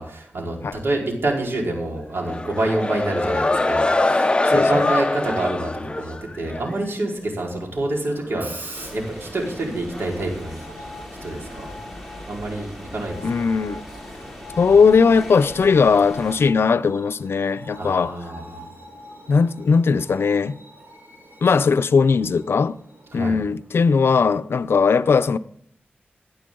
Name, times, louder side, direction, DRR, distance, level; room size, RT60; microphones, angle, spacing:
voice 1, 0.0-10.7 11.2-11.7 12.3-13.2 17.8-18.6 23.1-23.4, right 2 dB, 75° right, 4.5 m, -27 dB
sound 1, 2.2-6.7, left 2 dB, 25° left, 0.8 m, -22 dB
voice 2, 4.5-4.9 13.2-13.8 14.6-18.2 19.3-20.6 21.4-22.8 23.1-25.4, left 5 dB, 80° left, 0.6 m, -18 dB
Screech, 8.1-24.6, right 1 dB, 50° right, 5.7 m, -43 dB
sound 2, 8.7-16.5, left 1 dB, ahead, 4.0 m, -39 dB
17.5 x 11.0 x 3.9 m
wide cardioid pair, 85°, 4 cm